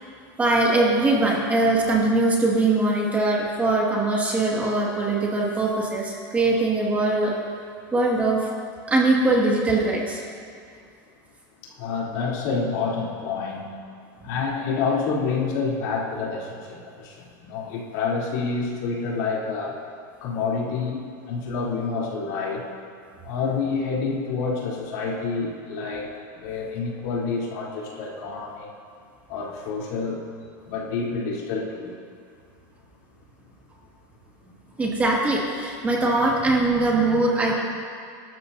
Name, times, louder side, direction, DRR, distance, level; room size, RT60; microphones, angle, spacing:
voice 1, 0.4-7.4 7.9-8.5 8.9-10.2 34.8-37.5, right 2 dB, 15° right, -3 dB, 1.9 m, -21 dB
voice 2, 11.6-13.6 14.2-19.8 20.2-22.6 23.2-26.1 26.4-28.7 29.3-30.2 30.7-31.9, left 4 dB, 65° left, -4 dB, 3.3 m, -28 dB
24.0 x 12.5 x 2.7 m, 2.3 s
supercardioid pair, 155°, 10 cm